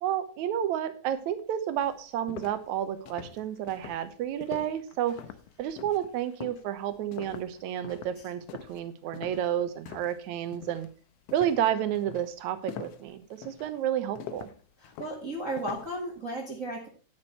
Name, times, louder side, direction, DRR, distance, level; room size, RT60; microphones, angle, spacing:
voice 1, 0.0-5.2 5.6-10.9 11.3-14.5, right 10 dB, 70° right, 11 dB, 2.2 m, -31 dB
sound 1, 1.3-1.4 1.8-10.2 10.5-10.9 11.3-16.0, left 10 dB, 70° left, 1.5 m, -44 dB
voice 2, 14.8-16.9, right 1 dB, 30° right, -1 dB, 1.7 m, -34 dB
10.5 x 9.5 x 3.1 m, 0.40 s
omnidirectional pair, 3.7 m